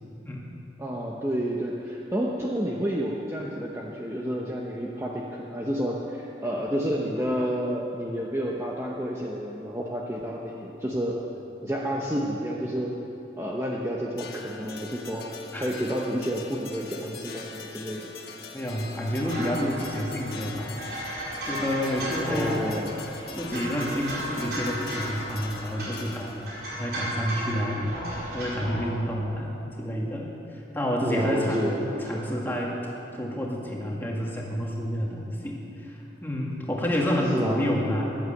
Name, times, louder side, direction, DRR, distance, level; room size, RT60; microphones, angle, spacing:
voice 1, 0.8-11.2 11.6-13.0 13.4-15.3 15.6-18.1 22.3-22.9 31.0-32.2 37.3-37.6, equal, 15° right, -3 dB, 0.9 m, -30 dB
sound 1, 14.2-26.6, left 5 dB, 60° left, 1.5 m, -43 dB
voice 2, 18.5-21.1 21.5-22.7 23.3-28.0 28.3-31.7 32.0-38.1, equal, 10° left, -3 dB, 2.1 m, -29 dB
sound 2, 19.2-28.9, right 1 dB, 60° right, 4.6 m, -35 dB
14.5 x 11.0 x 7.9 m, 2.9 s
head